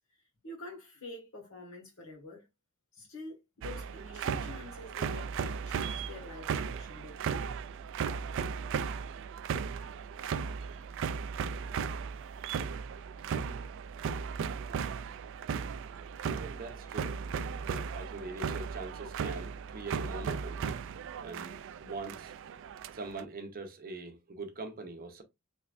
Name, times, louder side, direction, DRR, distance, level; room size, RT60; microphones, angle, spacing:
voice 1, 0.4-2.5 2.9-7.2, left 2 dB, 65° left, 1.8 m, -47 dB
sound 1, 3.6-23.2, right 6 dB, 60° right, 0.3 m, -36 dB
voice 2, 16.4-20.6 21.2-22.3 22.9-25.2, right 3 dB, 45° right, 0.7 m, -43 dB
3.3 x 3.2 x 2.5 m
head